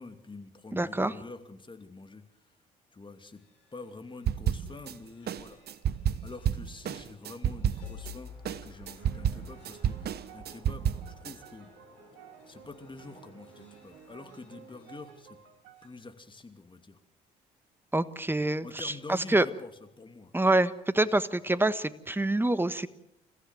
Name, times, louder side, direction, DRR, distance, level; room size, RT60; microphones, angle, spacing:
voice 1, 0.0-2.5 2.9-3.4 3.7-5.6 6.0-11.7 12.5-15.4 15.8-17.0 18.6-19.7 20.0-20.3, left 3 dB, 25° left, 7 dB, 2.7 m, -47 dB
voice 2, 0.7-1.1 17.9-19.4 20.3-22.9, right 2 dB, 10° right, 14 dB, 1.4 m, -26 dB
sound 1, 3.1-16.0, left 6 dB, 85° left, 5.1 m, -54 dB
sound 2, 4.3-4.9 5.3-8.1 8.4-11.3, right 9 dB, 55° right, 1.0 m, -30 dB
sound 3, 9.0-15.9, right 7 dB, 75° right, 2.3 m, -54 dB
28.0 x 15.0 x 7.9 m, 0.85 s
hypercardioid pair, 50°, 20 cm